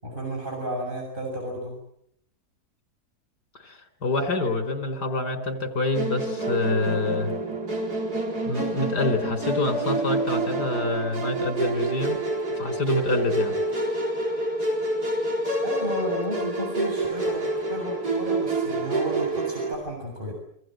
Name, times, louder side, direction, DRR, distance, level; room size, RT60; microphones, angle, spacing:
voice 1, 0.0-1.8 15.6-20.3, right 1 dB, 30° right, 0 dB, 7.6 m, -32 dB
voice 2, 3.6-7.3 8.5-12.2 12.6-13.6, left 3 dB, 85° left, 7 dB, 4.9 m, -27 dB
Musical instrument, 5.9-19.7, right 2 dB, 70° right, 5.3 m, -27 dB
27.5 x 25.0 x 7.8 m, 0.71 s
omnidirectional pair, 1.7 m